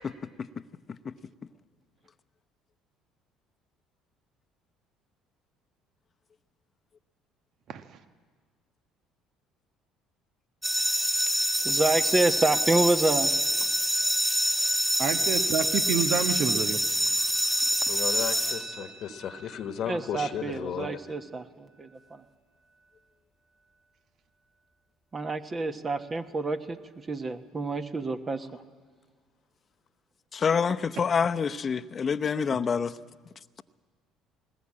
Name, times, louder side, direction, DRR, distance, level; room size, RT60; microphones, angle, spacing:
sound 1, 10.6-19.3, equal, 10° right, 1.8 m, -26 dB
voice 1, 11.6-13.3 19.9-22.2 25.1-26.8 27.1-28.5, right 2 dB, 30° right, 7 dB, 1.3 m, -28 dB
voice 2, 15.0-16.8, right 7 dB, 60° right, 9 dB, 1.3 m, -28 dB
voice 3, 17.9-21.0, left 9 dB, 60° left, 9 dB, 1.2 m, -34 dB
voice 4, 30.3-33.0, left 6 dB, 40° left, 11 dB, 0.8 m, -26 dB
21.0 x 19.5 x 8.7 m, 1.5 s
supercardioid pair, 75°, 0 cm